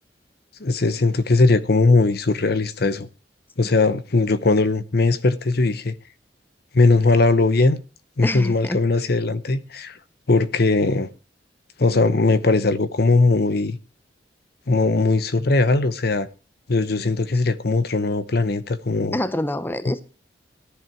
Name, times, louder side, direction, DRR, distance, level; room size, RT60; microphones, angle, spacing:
voice 1, 0.6-3.1 3.6-5.9 6.7-7.8 8.2-10.0 10.3-11.1 11.8-13.8 14.7-16.3 16.7-19.2 19.9-20.0, left 3 dB, 60° left, 0.8 m, -19 dB
voice 2, 8.2-8.8 19.1-20.0, left 1 dB, 10° left, 0.7 m, -26 dB
14.5 x 10.5 x 4.6 m
head